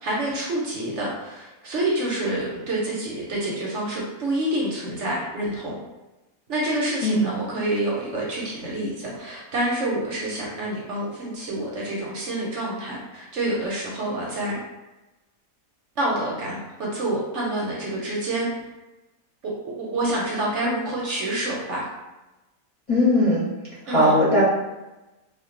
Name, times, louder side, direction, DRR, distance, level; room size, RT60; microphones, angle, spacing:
voice 1, 0.0-5.8 6.5-14.6 16.0-18.5 19.4-21.8 23.9-24.2, right 1 dB, 60° right, -4 dB, 0.9 m, -27 dB
voice 2, 7.0-7.3 22.9-23.4 23.9-24.4, left 1 dB, 30° left, -10 dB, 0.7 m, -19 dB
2.3 x 2.2 x 3.7 m, 1.0 s
omnidirectional pair, 1.5 m